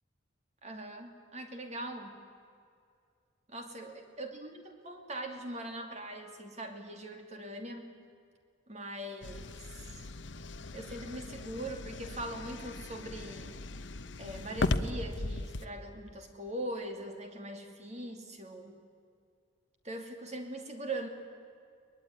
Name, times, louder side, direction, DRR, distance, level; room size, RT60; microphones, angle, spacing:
voice 1, 0.6-2.1 3.5-7.9 8.7-10.0 10.7-13.5 14.2-18.8 19.8-21.1, right 1 dB, 35° right, 5 dB, 2.7 m, -41 dB
sound 1, 9.2-15.7, left 2 dB, 65° left, 1.0 m, -37 dB
22.0 x 21.0 x 9.5 m, 2.3 s
head